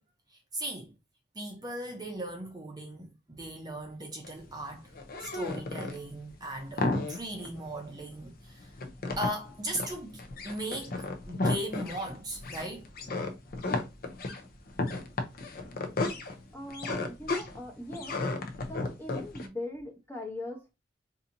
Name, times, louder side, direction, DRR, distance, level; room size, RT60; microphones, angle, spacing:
voice 1, 0.3-0.9 1.4-4.9 5.2-8.7 9.2-10.2 10.4-11.0 11.3-12.8, right 1 dB, 20° right, 0.6 m, -38 dB
sound 1, 4.2-19.5, left 2 dB, 50° left, 0.6 m, -34 dB
voice 2, 16.5-18.2 18.7-20.7, left 1 dB, 10° left, 0.8 m, -41 dB
4.1 x 2.7 x 2.6 m
head